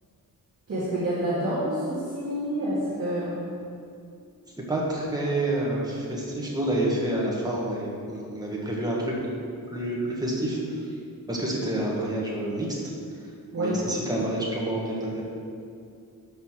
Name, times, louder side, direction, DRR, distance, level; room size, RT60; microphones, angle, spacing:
voice 1, 0.7-3.6 13.5-13.9, right 1 dB, 40° right, -10 dB, 1.9 m, -28 dB
voice 2, 4.7-9.1 9.7-10.9 11.3-12.8 13.2-15.2, right 1 dB, 10° right, -4 dB, 1.4 m, -28 dB
7.0 x 5.2 x 6.1 m, 2.4 s
wide cardioid pair, 165°, 37 cm